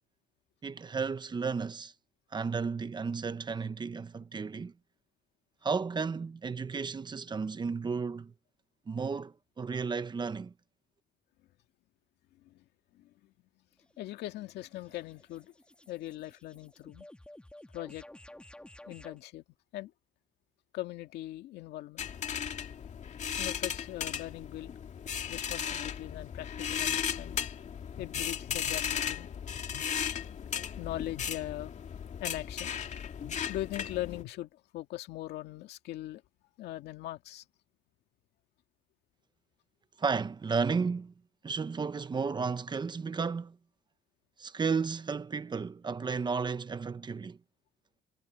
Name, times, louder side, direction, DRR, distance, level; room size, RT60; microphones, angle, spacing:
voice 1, 0.6-1.9 2.3-4.7 5.6-8.3 8.9-10.5 40.0-41.1 41.4-43.6 44.4-47.4, right 5 dB, 25° right, 1.1 m, -33 dB
voice 2, 12.9-13.3 14.0-15.5 15.9-17.1 17.7-18.0 18.9-19.4 19.7-19.9 20.7-22.1 23.4-24.7 25.3-27.5 28.0-29.3 29.7-31.7 32.2-32.7 33.2-36.2 36.6-37.4, left 15 dB, 80° left, 2.2 m, -41 dB
sound 1, 13.8-19.2, left 1 dB, 5° left, 3.2 m, -53 dB
sound 2, 22.0-34.2, left 8 dB, 45° left, 2.3 m, -36 dB
cardioid pair, 110°, 17 cm